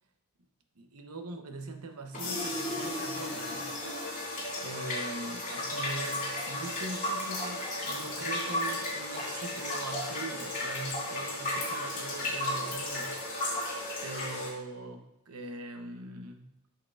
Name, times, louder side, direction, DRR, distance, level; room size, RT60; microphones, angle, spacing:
voice 1, 0.8-3.7 4.0-13.2 14.0-16.5, right 2 dB, 80° right, 5 dB, 0.9 m, -42 dB
sound 1, 2.1-14.5, left 1 dB, 35° left, 2.4 m, -34 dB
8.1 x 6.3 x 2.4 m, 0.85 s
head